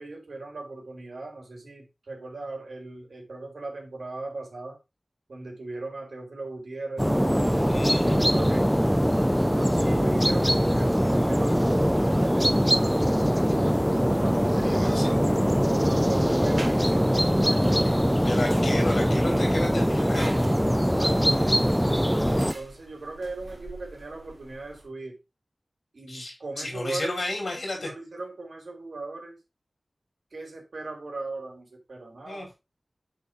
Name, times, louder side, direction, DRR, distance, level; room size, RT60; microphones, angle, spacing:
voice 1, 0.0-4.8 5.3-8.7 9.4-13.6 14.0-15.2 15.6-17.9 20.7-21.4 22.3-25.2 25.9-27.1 27.7-29.3 30.3-32.5, right 2 dB, 85° right, 1 dB, 3.2 m, -38 dB
sound 1, 7.0-22.5, equal, ahead, 0.6 m, -22 dB
voice 2, 7.7-8.2 14.7-15.2 18.2-21.8 26.1-27.9 32.2-32.5, left 2 dB, 70° left, 2 dB, 4.2 m, -33 dB
sound 2, 15.2-24.9, right 2 dB, 40° right, 2.7 m, -44 dB
8.3 x 4.3 x 4.7 m, 0.25 s
wide cardioid pair, 65°, 0 cm